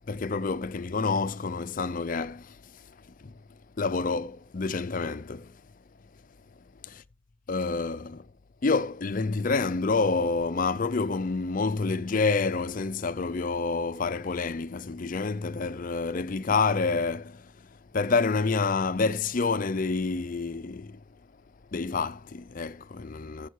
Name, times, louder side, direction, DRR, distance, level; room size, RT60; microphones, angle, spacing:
voice 1, 0.0-2.6 3.2-3.3 3.8-5.5 6.8-6.9 7.5-8.2 8.6-17.5 17.9-21.0 21.7-23.5, left 4 dB, 40° left, 0.5 m, -28 dB
14.5 x 5.5 x 4.7 m
head